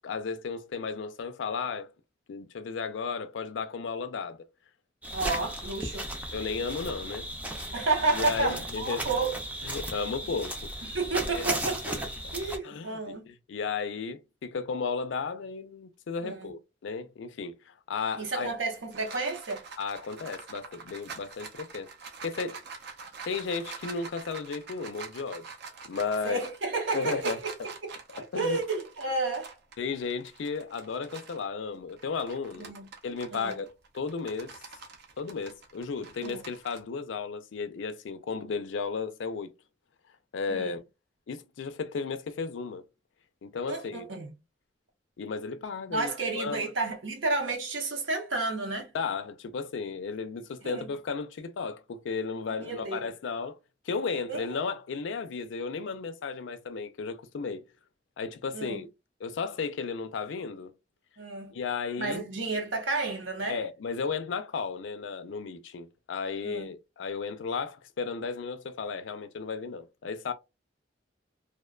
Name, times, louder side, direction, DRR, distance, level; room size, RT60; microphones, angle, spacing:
voice 1, 0.0-1.9 2.3-4.4 6.3-7.3 8.1-9.1 9.6-10.7 11.3-11.5 12.6-18.5 19.8-21.9 22.2-22.6 23.2-25.4 25.8-26.4 26.9-27.4 28.1-28.6 29.8-32.7 33.0-33.7 33.9-34.6 35.2-39.5 40.3-40.8 41.3-42.8 43.4-44.1 45.2-46.6 48.9-53.6 53.8-57.7 58.2-58.9 59.2-60.7 61.5-62.2 63.5-70.3, left 5 dB, 70° left, 0.4 m, -34 dB
sound 1, 5.0-12.6, right 1 dB, 10° right, 0.4 m, -36 dB
voice 2, 5.1-6.1 7.7-9.4 10.9-12.0 12.3-13.3 16.2-16.5 18.2-19.7 26.2-27.5 28.4-29.6 32.6-32.9 33.3-33.6 36.2-36.4 40.5-40.7 43.7-44.3 45.9-48.9 50.6-50.9 52.6-53.1 54.3-54.6 58.5-58.8 61.2-61.5 62.0-63.6 66.4-66.7, right 3 dB, 90° right, 0.9 m, -31 dB
sound 2, 18.5-31.5 31.9-36.8, right 5 dB, 60° right, 0.5 m, -45 dB
2.4 x 2.2 x 2.3 m
head